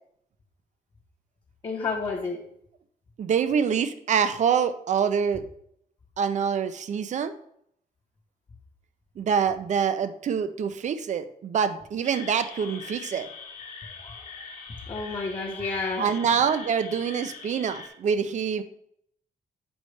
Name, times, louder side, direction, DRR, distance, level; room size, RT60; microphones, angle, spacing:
voice 1, 1.6-2.4 14.9-16.1, left 4 dB, 30° left, -3 dB, 0.8 m, -30 dB
voice 2, 3.2-5.4 6.2-7.3 9.2-13.3 16.0-18.6, right 7 dB, 50° right, 11 dB, 0.5 m, -25 dB
sound 1, 12.0-17.9, left 5 dB, 50° left, 1.3 m, -42 dB
7.9 x 5.2 x 3.2 m, 0.70 s
wide cardioid pair, 170°, 15 cm